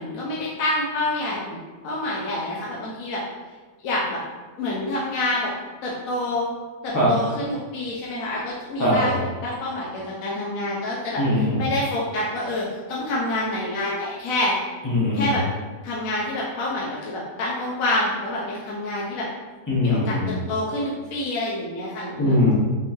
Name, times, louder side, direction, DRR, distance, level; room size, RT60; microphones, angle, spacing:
voice 1, 0.0-1.6 1.8-3.2 3.8-4.2 4.6-5.5 5.8-6.5 6.8-9.1 9.4-11.2 11.6-14.5 15.1-15.4 15.8-19.3 19.8-22.4, left 1 dB, 60° left, -5 dB, 1.0 m, -27 dB
voice 2, 8.8-9.2 11.2-11.6 14.8-15.3 19.7-20.4 22.2-22.5, left 1 dB, 15° left, -7 dB, 0.9 m, -21 dB
5.3 x 3.0 x 2.7 m, 1.3 s
omnidirectional pair, 1.9 m